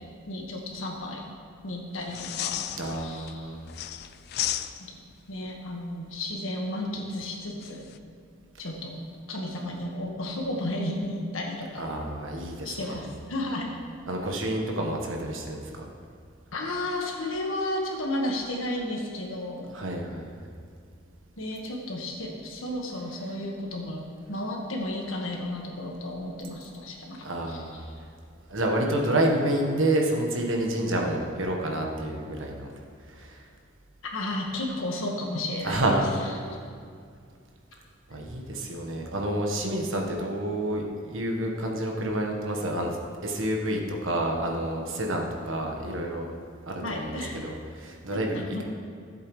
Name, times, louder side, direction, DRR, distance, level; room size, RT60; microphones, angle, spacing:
voice 1, 0.3-1.2 1.6-2.7 3.0-3.5 4.8-4.9 5.3-7.8 8.6-9.0 9.3-11.8 12.6-13.7 16.5-19.7 21.4-24.0 24.3-27.6 34.1-36.0 36.4-36.6 46.8-47.4 48.1-48.6, left 1 dB, 80° left, 0 dB, 1.6 m, -33 dB
sound 1, 2.0-3.3 3.7-5.1 7.6-8.0, left 12 dB, 50° left, 0.3 m, -33 dB
voice 2, 2.7-3.6 11.8-13.0 14.1-15.8 19.7-20.3 27.2-27.8 28.5-32.7 33.1-33.4 35.6-36.1 38.1-43.0 43.2-46.3 46.6-48.6, right 1 dB, 70° right, 1 dB, 1.3 m, -29 dB
13.5 x 7.7 x 3.2 m, 2.2 s
head